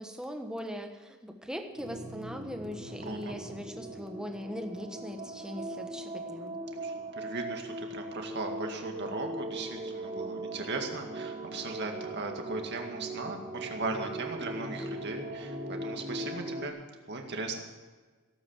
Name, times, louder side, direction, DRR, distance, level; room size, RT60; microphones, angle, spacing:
voice 1, 0.0-6.6, equal, 5° right, 4 dB, 1.3 m, -40 dB
sound 1, 1.8-16.7, right 1 dB, 35° right, 3.0 m, -39 dB
voice 2, 2.8-3.4 6.8-16.8 17.1-17.6, right 3 dB, 50° right, 3 dB, 2.1 m, -38 dB
17.0 x 8.9 x 7.3 m, 1.4 s
head